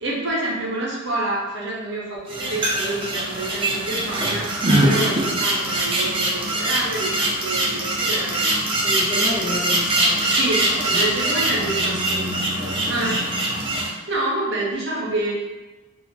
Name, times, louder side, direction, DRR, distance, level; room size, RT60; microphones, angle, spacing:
voice 1, 0.0-8.6 10.3-10.7 10.9-11.9 12.9-13.2 14.1-15.3, right 2 dB, 55° right, -4 dB, 0.7 m, -27 dB
sound 1, 2.3-13.9, right 1 dB, 25° right, 0.4 m, -22 dB
voice 2, 8.8-13.2 13.9-14.1, equal, 55° left, -4 dB, 0.7 m, -33 dB
2.3 x 2.1 x 3.9 m, 1.2 s
head